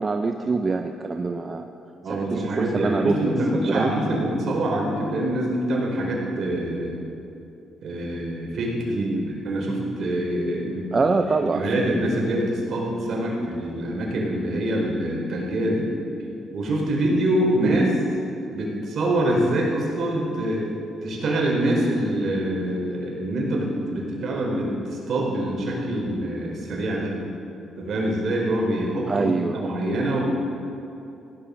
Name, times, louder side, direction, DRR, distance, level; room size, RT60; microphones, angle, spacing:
voice 1, 0.0-1.7 2.1-3.2 3.7-3.9 8.9-9.3 10.9-11.6 17.6-17.9 20.3-20.4 29.1-29.6, right 4 dB, 30° right, 5 dB, 0.7 m, -24 dB
voice 2, 2.0-6.9 7.8-11.1 11.3-15.9 16.5-17.9 18.5-20.7 21.0-24.7 25.1-27.1 27.8-30.2, right 1 dB, 60° right, -2 dB, 4.5 m, -25 dB
16.5 x 11.5 x 6.5 m, 2.7 s
cardioid pair, 90°, 0 cm